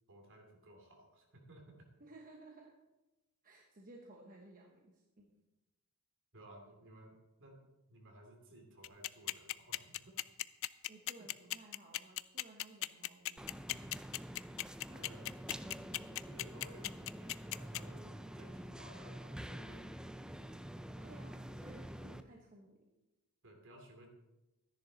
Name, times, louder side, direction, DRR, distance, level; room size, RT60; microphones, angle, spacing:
voice 1, 0.1-1.8 6.3-7.6 7.9-10.3 11.2-11.3 14.8-15.4 16.0-19.8 23.4-24.1, right 1 dB, 60° right, 1 dB, 2.8 m, -57 dB
voice 2, 2.0-2.7 3.4-5.4 10.9-13.9 21.0-22.8, right 2 dB, 40° right, 0 dB, 1.2 m, -57 dB
sound 1, 8.8-17.8, left 16 dB, 65° left, 0.4 m, -37 dB
sound 2, 13.4-22.2, equal, 5° right, 0.4 m, -47 dB
13.0 x 10.5 x 4.0 m, 1.0 s
head